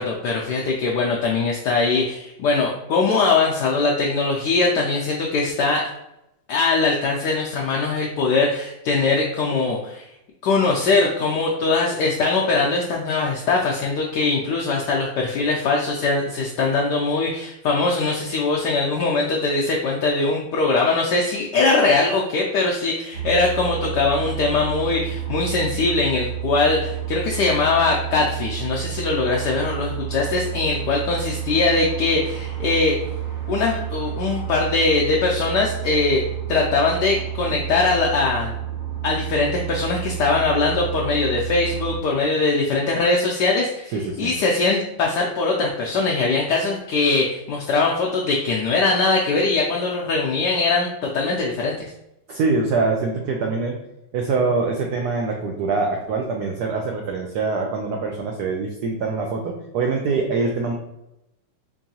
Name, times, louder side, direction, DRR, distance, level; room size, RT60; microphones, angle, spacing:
voice 1, 0.0-5.9 6.5-10.1 10.4-33.0 33.5-36.2 36.5-38.5 39.0-51.7, left 3 dB, 75° left, -2 dB, 1.0 m, -21 dB
sound 1, 23.1-42.0, right 11 dB, 55° right, 0.6 m, -30 dB
voice 2, 43.9-44.4 52.3-53.8 54.1-60.7, right 4 dB, 75° right, 1 dB, 0.9 m, -24 dB
4.6 x 2.6 x 2.8 m, 0.87 s
omnidirectional pair, 2.2 m